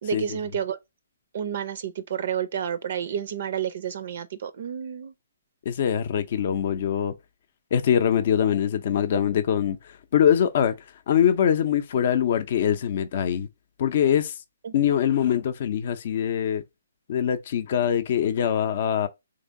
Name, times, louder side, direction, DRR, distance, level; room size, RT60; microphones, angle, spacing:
voice 1, 0.0-0.8 1.3-5.1 14.6-14.7, right 8 dB, 50° right, 0.4 m, -30 dB
voice 2, 5.7-7.1 7.7-9.8 10.1-10.7 11.1-13.5 13.8-14.3 14.7-16.6 17.1-19.1, left 9 dB, 45° left, 0.5 m, -23 dB
3.7 x 3.3 x 2.6 m
figure-of-eight pair, 130°, 0 cm